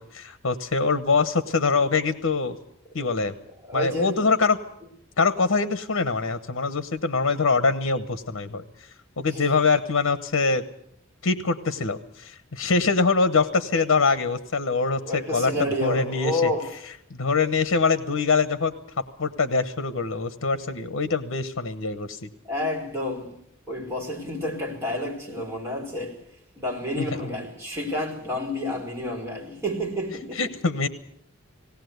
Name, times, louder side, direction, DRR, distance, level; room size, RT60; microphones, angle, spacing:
voice 1, 0.0-2.6 2.9-3.3 3.7-4.6 5.2-8.6 9.2-10.6 11.2-15.0 15.3-15.5 15.8-16.3 17.1-18.7 19.2-22.3 30.4-30.9, left 4 dB, 80° left, 1.0 m, -23 dB
voice 2, 2.8-4.2 9.3-9.5 15.0-16.7 22.5-23.4 23.7-30.8, left 1 dB, 15° right, 4.6 m, -30 dB
18.5 x 18.0 x 7.9 m
head